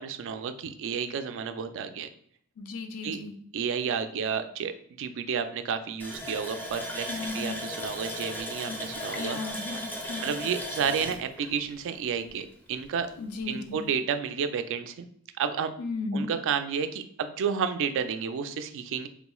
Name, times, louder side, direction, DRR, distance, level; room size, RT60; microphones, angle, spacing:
voice 1, 0.0-2.1 3.0-3.2 3.5-7.1 7.3-9.4 10.2-13.1 13.5-15.1 15.4-15.7 16.1-19.1, right 6 dB, 60° right, 9 dB, 0.3 m, -31 dB
voice 2, 2.6-3.3 7.1-7.7 8.7-8.8 9.1-10.3 13.2-13.8 15.8-16.3, left 3 dB, 80° left, 7 dB, 0.4 m, -35 dB
Water tap faucet, 6.0-12.5 12.8-12.9 13.4-13.5, equal, 10° left, 0.4 m, -37 dB
3.7 x 2.3 x 3.0 m, 0.65 s
head